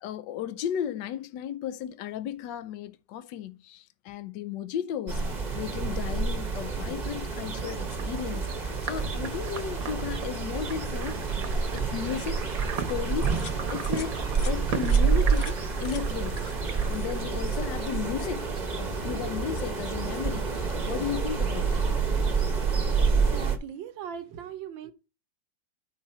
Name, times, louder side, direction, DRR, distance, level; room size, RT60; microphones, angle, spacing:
voice 1, 0.0-5.2 5.5-12.5 12.9-13.4 13.7-14.2 14.4-18.5 18.8-21.9, left 9 dB, 75° left, 1.3 m, -35 dB
sound 1, 5.1-23.6, right 5 dB, 30° right, 0.9 m, -28 dB
sound 2, 7.4-17.2, right 7 dB, 55° right, 1.2 m, -39 dB
sound 3, 13.3-13.6 13.8-14.1 14.3-14.5 14.9-15.0 15.4-15.6 15.8-16.0 16.3-16.5 16.8-17.6 17.9-18.2, left 6 dB, 50° left, 0.7 m, -44 dB
voice 2, 23.2-24.9, right 8 dB, 85° right, 1.7 m, -39 dB
11.0 x 5.0 x 4.3 m
omnidirectional pair, 2.0 m